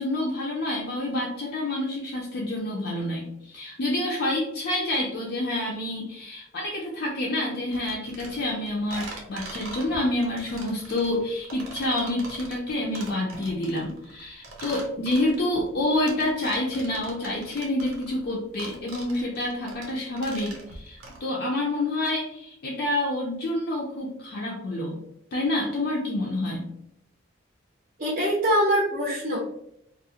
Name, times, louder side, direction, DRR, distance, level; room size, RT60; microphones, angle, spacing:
voice 1, 0.0-25.0 25.3-26.7, left 1 dB, 50° left, -3 dB, 0.4 m, -28 dB
sound 1, 7.7-21.2, right 2 dB, 85° right, 0.6 m, -42 dB
voice 2, 28.0-29.4, equal, 40° right, -4 dB, 0.5 m, -23 dB
2.3 x 2.0 x 2.7 m, 0.73 s
head